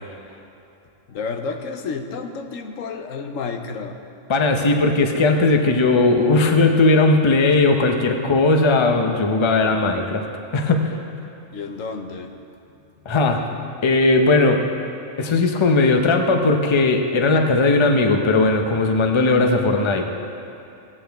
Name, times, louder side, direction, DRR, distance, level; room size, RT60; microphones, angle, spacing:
voice 1, 1.1-4.0 11.5-12.4, left 4 dB, 85° left, 5 dB, 1.1 m, -30 dB
voice 2, 4.3-10.2 10.5-10.9 13.1-13.4 13.8-14.6 15.2-20.0, left 3 dB, 30° left, 4 dB, 0.6 m, -18 dB
16.5 x 8.6 x 3.5 m, 2.7 s
omnidirectional pair, 1.3 m